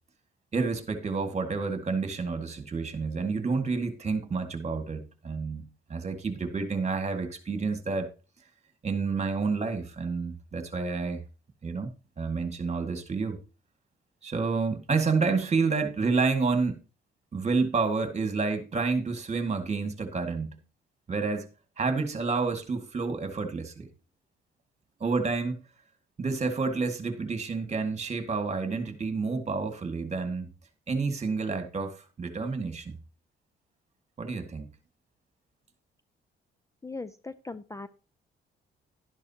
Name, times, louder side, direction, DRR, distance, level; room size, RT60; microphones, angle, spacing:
voice 1, 0.5-5.6 5.9-8.1 8.8-11.2 11.6-13.4 14.2-16.8 17.3-20.6 21.1-21.5 21.8-23.9 25.0-25.6 26.2-30.5 30.9-33.0 34.2-34.7, right 4 dB, 35° right, 2.0 m, -29 dB
voice 2, 36.8-37.9, left 3 dB, 15° left, 0.5 m, -39 dB
12.0 x 10.5 x 2.9 m
cardioid pair, 90°, 20 cm